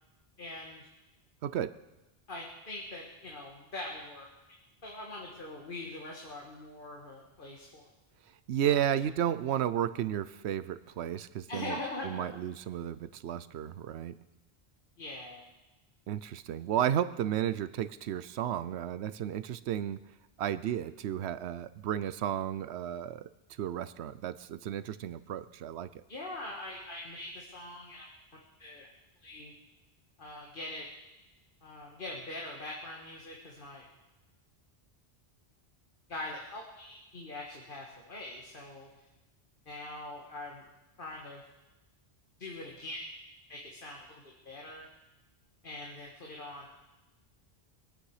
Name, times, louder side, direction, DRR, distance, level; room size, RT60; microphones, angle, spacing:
voice 1, 0.4-0.9 2.3-4.3 4.8-7.9 8.7-9.0 11.5-12.3 15.0-15.4 26.1-28.1 28.6-28.9 29.2-29.5 30.2-30.9 31.6-33.9 36.1-38.9 39.7-40.7 41.0-41.4 42.4-43.2 43.5-44.8 45.6-46.7, left 2 dB, 55° left, -2 dB, 2.0 m, -42 dB
voice 2, 1.4-1.8 8.5-11.8 12.0-14.1 16.1-20.0 20.4-23.3 23.6-26.0, right 10 dB, 90° right, 14 dB, 0.9 m, -33 dB
23.5 x 9.1 x 4.9 m, 1.0 s
omnidirectional pair, 1.1 m